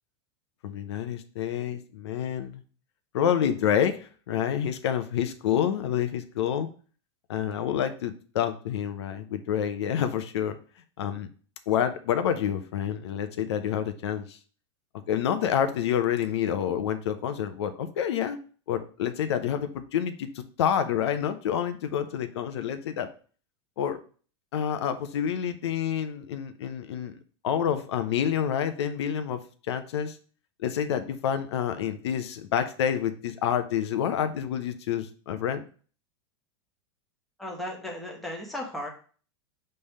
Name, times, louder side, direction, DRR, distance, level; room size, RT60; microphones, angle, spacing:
voice 1, 0.6-2.6 3.1-6.7 7.3-10.6 11.0-11.3 11.7-14.4 15.1-18.4 18.7-23.1 23.8-24.0 24.5-27.1 27.4-29.4 29.7-30.2 30.6-35.6, left 9 dB, 75° left, 8 dB, 0.8 m, -28 dB
voice 2, 37.4-38.9, left 1 dB, ahead, -2 dB, 1.3 m, -35 dB
5.4 x 3.4 x 5.4 m, 0.40 s
supercardioid pair, 150°, 14 cm